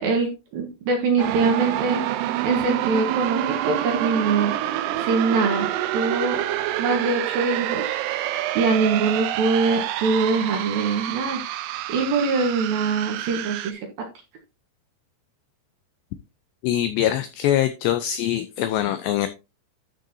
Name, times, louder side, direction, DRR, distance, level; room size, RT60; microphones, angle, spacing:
voice 1, 0.0-2.0 2.4-4.5 4.9-6.4 6.8-8.0 8.5-11.4 11.9-13.8, right 4 dB, 65° right, 3 dB, 2.6 m, -23 dB
sound 1, 1.2-13.7, right 13 dB, 90° right, 2.4 m, -27 dB
voice 2, 16.6-19.3, left 12 dB, 85° left, 11 dB, 2.4 m, -23 dB
12.5 x 6.3 x 2.7 m, 0.28 s
omnidirectional pair, 5.6 m